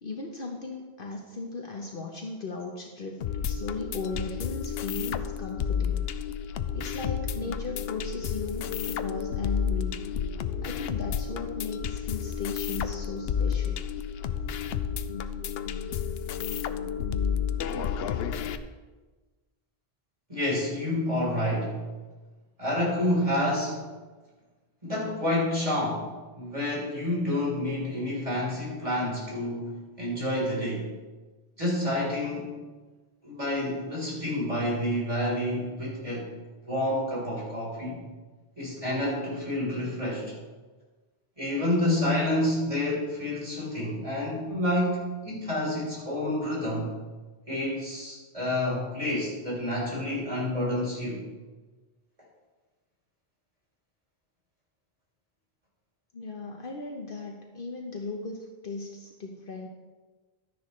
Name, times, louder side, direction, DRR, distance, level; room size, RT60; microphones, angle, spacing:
voice 1, 0.0-6.0 6.7-9.9 10.6-13.8 56.1-59.7, left 3 dB, 60° left, 1 dB, 1.1 m, -37 dB
sound 1, 3.2-18.6, left 7 dB, 75° left, 0.8 m, -31 dB
voice 2, 20.3-21.8 22.6-23.8 24.8-30.9 31.6-32.5 33.2-36.3 36.7-38.0 38.6-40.3 41.4-46.9 47.5-51.2, left 1 dB, 35° right, -5 dB, 3.9 m, -29 dB
12.0 x 10.0 x 3.2 m, 1.3 s
omnidirectional pair, 1.1 m